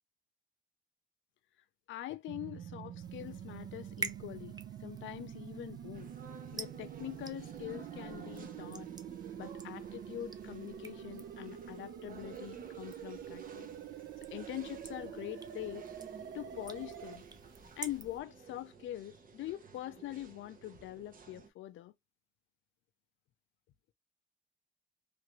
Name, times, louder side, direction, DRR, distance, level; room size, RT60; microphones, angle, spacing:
voice 1, 1.9-6.1 6.5-8.9 9.4-13.7 14.3-15.9 16.3-17.2 17.8-21.9, left 14 dB, 75° left, 0.5 m, -44 dB
sound 1, 2.3-17.2, right 9 dB, 65° right, 0.6 m, -46 dB
sound 2, 3.0-18.2, right 4 dB, 20° right, 0.5 m, -50 dB
sound 3, 5.9-21.5, right 5 dB, 45° right, 0.9 m, -54 dB
3.3 x 2.5 x 3.0 m
cardioid pair, 90°, 20 cm